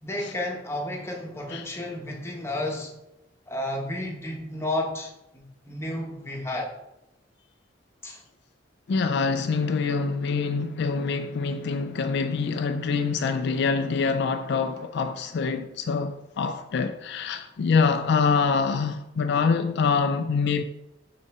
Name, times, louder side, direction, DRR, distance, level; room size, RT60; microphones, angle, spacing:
voice 1, 0.0-2.9 3.5-6.7 8.0-8.2, left 1 dB, 15° left, 1.0 m, -32 dB
voice 2, 8.9-20.6, left 5 dB, 65° left, 0.4 m, -25 dB
5.5 x 4.1 x 4.7 m
head